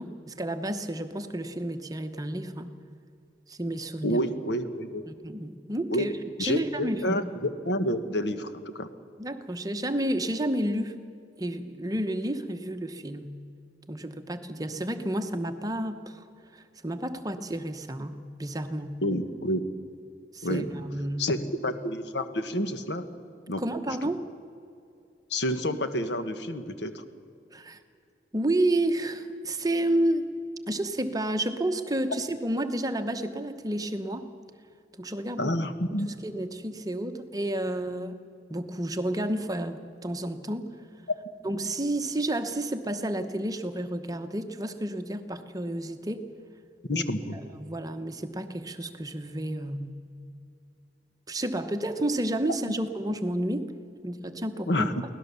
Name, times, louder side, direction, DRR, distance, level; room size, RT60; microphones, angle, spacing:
voice 1, 0.0-2.7 3.5-4.2 5.1-6.1 6.4-7.2 9.2-11.0 11.4-13.4 13.9-16.2 16.5-19.0 20.3-21.3 23.6-24.3 27.5-27.8 28.3-30.3 30.7-34.3 35.0-35.5 36.1-38.2 38.5-40.7 41.4-46.3 46.9-47.0 47.3-50.0 51.3-53.7 54.0-54.9, right 1 dB, 20° right, 8 dB, 1.0 m, -30 dB
voice 2, 4.0-5.0 5.9-6.1 6.4-8.9 19.0-19.6 20.4-20.7 21.2-23.1 23.5-23.6 25.3-27.0 35.4-36.1 41.1-41.2 46.9-47.4 54.7-55.0, left 1 dB, 75° left, 9 dB, 1.4 m, -29 dB
24.0 x 17.5 x 7.0 m, 2.5 s
head